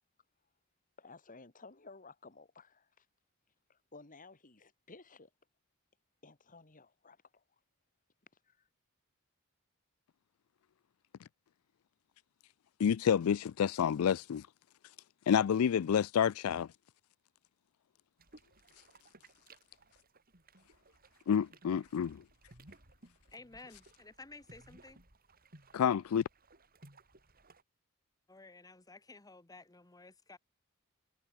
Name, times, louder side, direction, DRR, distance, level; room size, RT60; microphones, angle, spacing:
voice 1, 1.0-3.1 3.7-5.3 6.2-7.4 8.4-8.7, left 3 dB, 40° left, 2.4 m, -55 dB
voice 2, 12.8-14.4 15.3-16.7 21.3-22.2 25.7-26.2, left 8 dB, 80° left, 0.4 m, -29 dB
sound 1, 18.2-27.6, right 2 dB, 45° right, 5.5 m, -61 dB
voice 3, 23.3-25.0 28.3-30.4, left 3 dB, 15° left, 1.0 m, -54 dB
head